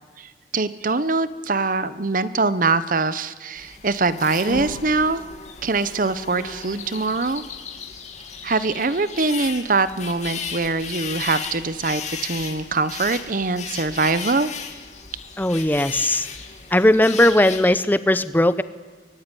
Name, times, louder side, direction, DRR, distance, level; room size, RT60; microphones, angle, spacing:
voice 1, 0.2-5.2 5.6-7.4 8.4-14.5, right 3 dB, 50° right, 14 dB, 0.9 m, -23 dB
sound 1, 3.6-17.8, left 5 dB, 40° left, 2.5 m, -35 dB
voice 2, 15.4-16.3 16.7-18.6, left 1 dB, 10° left, 14 dB, 0.7 m, -18 dB
24.0 x 21.5 x 10.0 m, 1.4 s
head